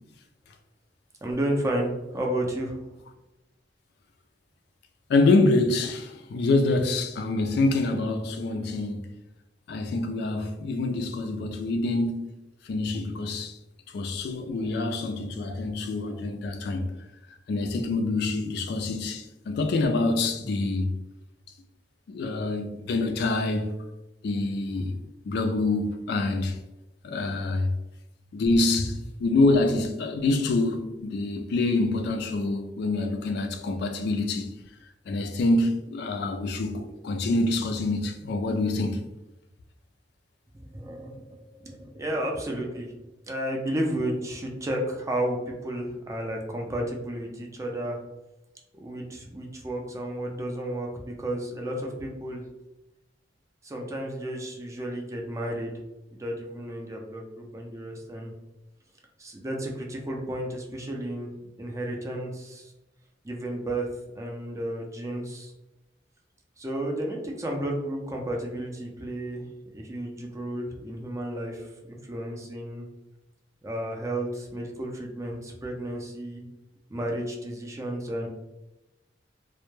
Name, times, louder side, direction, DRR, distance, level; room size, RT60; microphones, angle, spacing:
voice 1, 1.2-2.8 14.4-14.7 15.5-15.6 16.1-16.2 40.5-43.0 43.3-48.0 48.8-52.4 53.6-55.7 56.2-58.3 59.2-61.3 61.6-62.7 63.2-63.9 64.1-65.5 66.6-69.4 69.7-72.9 73.6-76.4 76.9-78.3, right 1 dB, 15° right, 0.4 m, -32 dB
voice 2, 5.1-9.0 9.7-12.4 12.6-13.6 13.9-16.9 17.5-21.0 22.1-23.7 24.2-25.0 25.3-26.6 27.0-27.8 28.3-34.5 35.1-39.0, left 2 dB, 65° left, 0.3 m, -26 dB
2.1 x 2.1 x 3.0 m
head